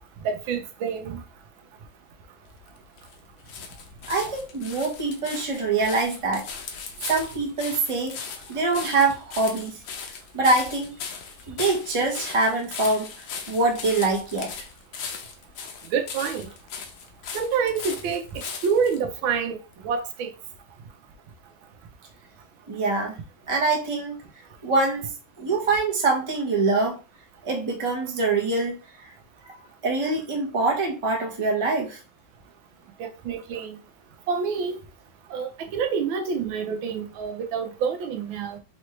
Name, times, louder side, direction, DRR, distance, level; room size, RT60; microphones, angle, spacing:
voice 1, 0.2-1.2 15.9-16.5 17.3-19.6 19.8-20.3 33.0-33.8 34.3-34.8 35.3-38.6, right 6 dB, 85° right, 1.5 m, -27 dB
sound 1, 2.5-19.0 19.7-19.8, left 6 dB, 75° left, 1.5 m, -38 dB
voice 2, 4.1-6.5 7.1-8.2 8.5-9.8 10.3-11.0 11.5-14.5 22.7-23.2 23.5-24.1 24.6-25.1 25.4-27.0 27.4-28.8 29.8-32.0, right 3 dB, 25° right, 0.8 m, -24 dB
4.9 x 3.1 x 3.1 m
omnidirectional pair, 2.1 m